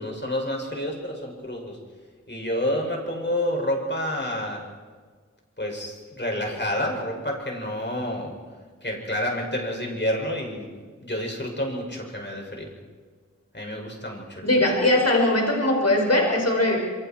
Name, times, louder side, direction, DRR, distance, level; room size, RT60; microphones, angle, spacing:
voice 1, 0.0-1.8 2.3-4.6 5.6-8.3 8.8-10.7 11.0-12.7 13.5-14.7, left 1 dB, 40° left, 0 dB, 6.5 m, -29 dB
voice 2, 14.4-16.8, left 1 dB, 60° left, 0 dB, 5.8 m, -20 dB
27.5 x 24.0 x 4.6 m, 1.6 s
wide cardioid pair, 45°, 29 cm